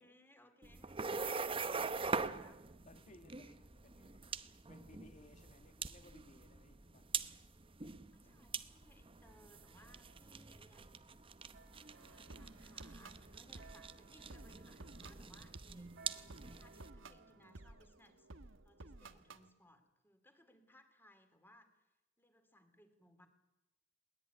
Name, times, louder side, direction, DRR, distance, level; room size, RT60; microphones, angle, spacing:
voice 1, 0.0-2.6 8.1-11.0 11.9-15.9 16.4-18.3 18.6-21.9 22.2-23.3, left 1 dB, 10° left, 2.8 m, -66 dB
sound 1, 0.6-16.9, right 5 dB, 30° right, 0.8 m, -44 dB
voice 2, 1.2-2.5 2.8-4.3 4.7-7.1 8.2-8.5, left 2 dB, 40° left, 1.7 m, -61 dB
sound 2, 9.2-17.7, right 5 dB, 60° right, 2.2 m, -65 dB
sound 3, 11.9-19.5, right 2 dB, 75° right, 1.3 m, -56 dB
21.5 x 19.0 x 9.4 m
head